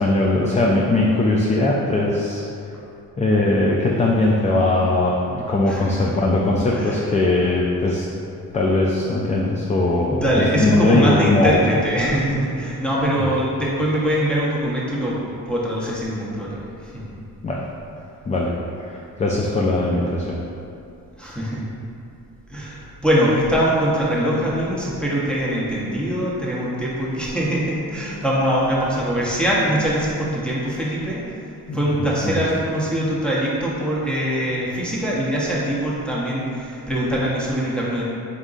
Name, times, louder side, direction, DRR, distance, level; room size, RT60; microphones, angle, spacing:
voice 1, 0.0-2.4 3.2-8.1 8.5-11.6 13.2-13.3 17.4-17.6 18.3-20.4 31.7-31.8 32.2-32.5, left 2 dB, 20° left, -3 dB, 0.3 m, -20 dB
voice 2, 6.7-7.0 10.1-17.0 21.2-21.6 22.5-38.0, equal, 5° left, -7 dB, 0.9 m, -23 dB
3.9 x 3.5 x 2.5 m, 2.6 s
cardioid pair, 80°, 35 cm